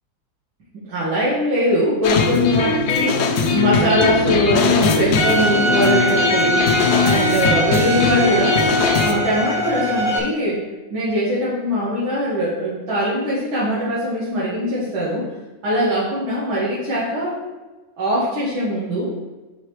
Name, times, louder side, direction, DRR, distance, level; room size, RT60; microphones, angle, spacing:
voice 1, 0.7-6.7 7.0-8.6 9.0-15.3 15.6-17.3 18.0-19.1, equal, 85° right, -9 dB, 2.6 m, -22 dB
sound 1, 2.0-9.1, left 4 dB, 65° left, 1.1 m, -19 dB
Bowed string instrument, 5.2-10.2, equal, ahead, 1.4 m, -22 dB
8.9 x 5.7 x 3.2 m, 1.2 s
omnidirectional pair, 2.1 m